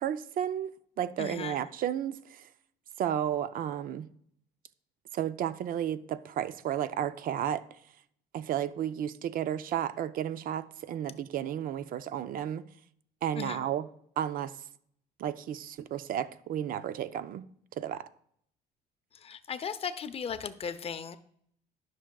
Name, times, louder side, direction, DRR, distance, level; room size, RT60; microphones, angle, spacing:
voice 1, 0.0-2.5 3.0-4.1 5.1-7.6 8.3-12.6 13.2-13.9 14.2-14.5 15.2-17.4 17.8-18.1, right 10 dB, 55° right, 0.5 m, -33 dB
voice 2, 1.2-1.6 13.3-13.6 19.1-21.2, left 7 dB, 35° left, 0.5 m, -37 dB
12.5 x 6.1 x 2.3 m
cardioid pair, 110°, 17 cm